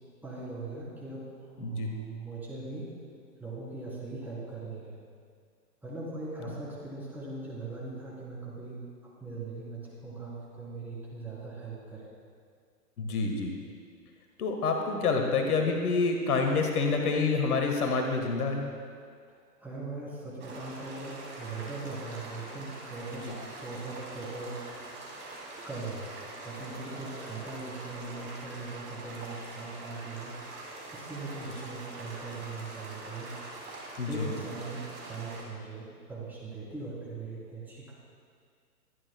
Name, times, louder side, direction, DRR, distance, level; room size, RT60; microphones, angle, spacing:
voice 1, 0.2-2.9 3.4-5.0 5.8-8.8 9.2-12.1 19.3-24.6 25.6-26.1 26.4-30.4 30.9-33.3 34.0-37.9, right 3 dB, 5° right, -7 dB, 3.2 m, -40 dB
voice 2, 13.0-13.5 14.4-18.7 23.3-23.4 34.0-34.2, left 4 dB, 60° left, 3 dB, 1.5 m, -27 dB
sound 1, 20.4-35.4, right 2 dB, 20° right, 3.1 m, -44 dB
22.5 x 11.0 x 2.2 m, 2.1 s
hypercardioid pair, 125°, 49 cm